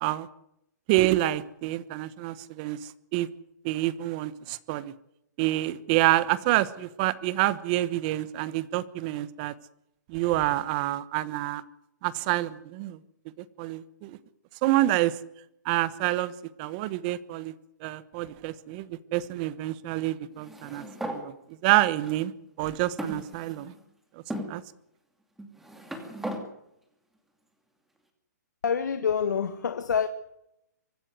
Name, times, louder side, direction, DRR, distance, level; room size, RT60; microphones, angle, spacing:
voice 1, 0.9-3.3 3.6-4.9 5.4-9.5 10.1-11.6 12.0-13.0 13.6-14.2 14.6-15.2 15.6-16.3 16.6-17.5 17.8-21.3 21.6-22.3 22.6-23.7 24.5-24.6, right 16 dB, 30° right, 1.1 m, -27 dB
sound 1, 20.4-21.2 22.0-22.1 23.0-23.8 24.3-24.5 25.4-26.4, right 1 dB, 5° right, 2.5 m, -36 dB
voice 2, 28.6-30.1, left 7 dB, 75° left, 1.6 m, -26 dB
24.5 x 12.5 x 9.5 m
hypercardioid pair, 160°, 10 cm